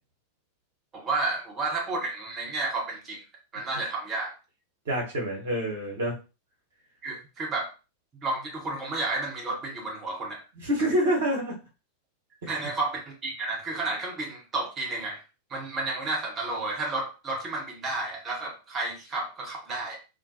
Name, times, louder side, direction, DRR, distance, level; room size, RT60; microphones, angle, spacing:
voice 1, 0.9-3.2 3.5-4.3 7.0-7.7 8.2-10.4 12.5-15.2 15.5-20.0, right 2 dB, 25° right, 0 dB, 0.9 m, -31 dB
voice 2, 4.8-6.1 10.6-11.6 12.4-12.6, equal, 65° right, -3 dB, 1.1 m, -27 dB
2.6 x 2.1 x 2.7 m, 0.31 s
figure-of-eight pair, 90°, 0 cm